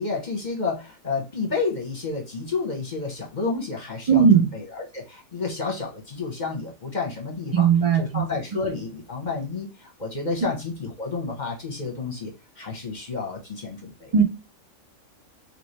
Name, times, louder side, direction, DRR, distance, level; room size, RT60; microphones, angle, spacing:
voice 1, 0.0-4.3 4.5-14.1, left 4 dB, 35° left, 0.9 m, -30 dB
voice 2, 4.1-4.5 7.5-8.2 14.1-14.2, right 7 dB, 55° right, 0.4 m, -17 dB
3.2 x 3.0 x 4.1 m
omnidirectional pair, 1.5 m